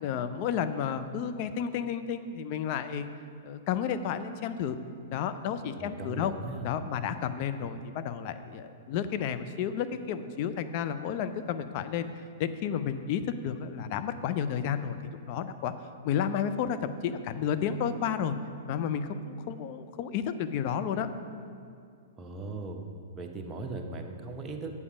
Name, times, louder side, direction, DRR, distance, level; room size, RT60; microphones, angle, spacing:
voice 1, 0.0-3.1 3.4-4.8 5.1-6.3 6.6-12.1 12.4-15.7 16.0-18.4 18.7-21.1, left 8 dB, 45° left, 10 dB, 0.5 m, -31 dB
voice 2, 5.8-6.7 22.2-22.8 23.2-24.8, right 3 dB, 20° right, 2 dB, 0.9 m, -38 dB
8.4 x 6.9 x 5.0 m, 2.3 s
hypercardioid pair, 110°, 0 cm